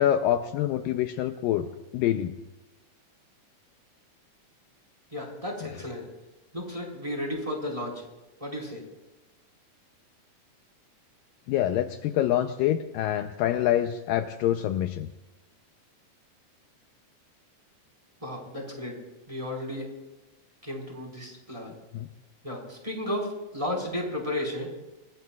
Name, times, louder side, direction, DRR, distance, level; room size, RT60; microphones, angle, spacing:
voice 1, 0.0-2.3 11.5-15.1 21.9-22.1, left 11 dB, 80° left, 7 dB, 2.2 m, -26 dB
voice 2, 5.1-6.0 6.5-8.0 8.4-8.8 18.2-19.0 19.3-19.9 20.6-21.7 22.4-24.7, left 1 dB, 10° right, 0 dB, 4.3 m, -33 dB
28.0 x 20.5 x 2.4 m, 1.1 s
omnidirectional pair, 4.2 m